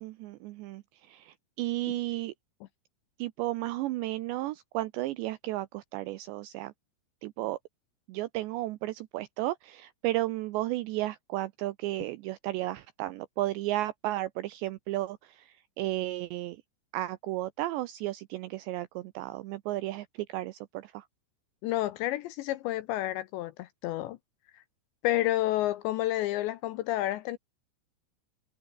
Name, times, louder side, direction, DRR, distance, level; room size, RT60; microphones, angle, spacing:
voice 1, 0.0-2.3 3.2-6.7 7.2-7.6 8.1-16.6 16.9-21.1, right 16 dB, 80° right, 2.5 m, -33 dB
voice 2, 21.6-24.2 24.5-24.6 25.0-27.4, left 15 dB, 80° left, 2.7 m, -30 dB
omnidirectional pair, 5.9 m